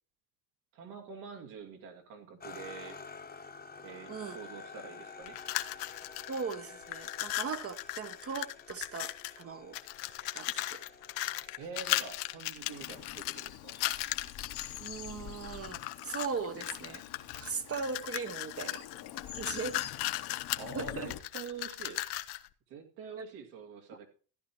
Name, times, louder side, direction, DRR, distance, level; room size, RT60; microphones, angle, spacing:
voice 1, 0.7-3.0 3.8-5.4 11.6-13.7 20.6-22.0 22.7-24.1, right 5 dB, 80° right, 2.7 m, -46 dB
sound 1, 2.4-12.4, left 5 dB, 20° left, 1.0 m, -50 dB
sound 2, 5.3-6.5 6.8-9.4 9.7-14.9 15.4-16.3 16.6-22.5, left 17 dB, 85° left, 0.8 m, -37 dB
voice 2, 6.3-9.8 10.3-10.8 14.8-17.0 17.4-18.9 19.3-19.8 20.7-21.1, right 5 dB, 30° right, 0.8 m, -38 dB
Bird vocalization bird call bird song / Stream, 12.6-21.2, left 11 dB, 55° left, 1.1 m, -46 dB
14.5 x 10.5 x 3.0 m
supercardioid pair, 90°, 47 cm